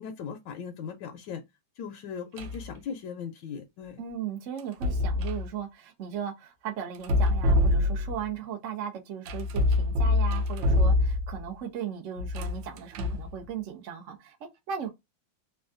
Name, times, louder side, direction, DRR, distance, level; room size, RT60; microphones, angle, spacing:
voice 1, 0.0-1.4 1.8-4.0, left 7 dB, 75° left, 1.2 m, -38 dB
sound 1, 2.4-2.7 4.6-5.5 7.0-8.3 9.3-11.5 12.2-13.3, left 2 dB, 80° right, 1.3 m, -25 dB
voice 2, 4.0-14.9, right 8 dB, 65° right, 0.7 m, -37 dB
3.5 x 2.2 x 2.4 m
omnidirectional pair, 2.0 m